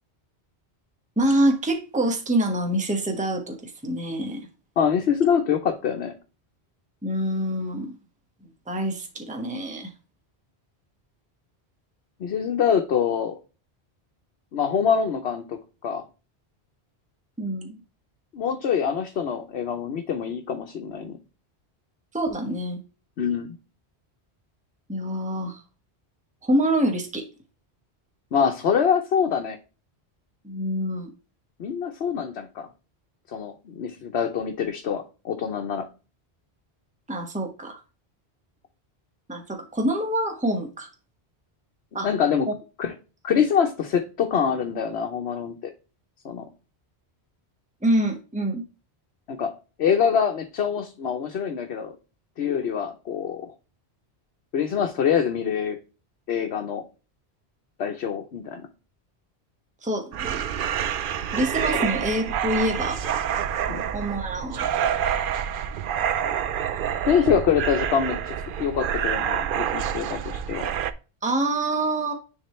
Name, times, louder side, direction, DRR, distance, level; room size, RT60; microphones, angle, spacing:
voice 1, 1.2-4.4 7.0-8.0 8.7-9.9 17.4-17.8 22.1-22.8 24.9-25.6 26.4-27.2 30.4-31.1 37.1-37.8 39.3-40.9 41.9-42.1 47.8-48.6 59.8-60.4 61.3-63.0 63.9-64.7 71.2-72.1, right 1 dB, 5° right, 4 dB, 1.1 m, -26 dB
voice 2, 4.8-6.1 12.2-13.4 14.5-16.0 18.3-21.2 23.2-23.6 28.3-29.6 31.6-32.7 33.3-35.9 42.0-42.5 42.8-42.9 43.2-45.7 46.2-46.5 49.3-49.5 49.8-52.0 52.4-53.5 54.5-55.8 56.3-56.8 57.8-58.6 61.7-61.8 63.7-63.8 67.0-70.7, left 7 dB, 75° left, 3 dB, 1.1 m, -25 dB
sound 1, 60.1-70.9, right 9 dB, 60° right, 0.6 m, -27 dB
9.7 x 3.6 x 3.1 m, 0.33 s
omnidirectional pair, 1.1 m